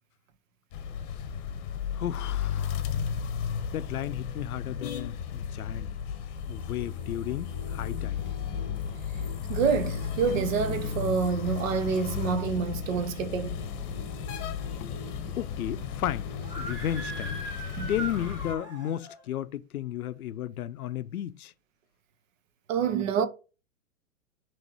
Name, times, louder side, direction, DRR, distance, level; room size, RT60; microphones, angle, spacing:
sound 1, 0.7-18.5, left 7 dB, 40° left, 0.8 m, -34 dB
voice 1, 1.9-2.9 3.7-5.9 6.5-8.2 14.8-17.4 17.9-21.5, left 11 dB, 90° left, 0.5 m, -34 dB
sound 2, 6.5-18.4, left 1 dB, 10° left, 1.0 m, -47 dB
voice 2, 9.5-13.6 17.8-17.9 22.7-23.3, right 6 dB, 65° right, 0.8 m, -27 dB
Screaming, 16.4-19.2, right 2 dB, 10° right, 2.0 m, -39 dB
5.3 x 3.1 x 3.0 m
hypercardioid pair, 125°, 43 cm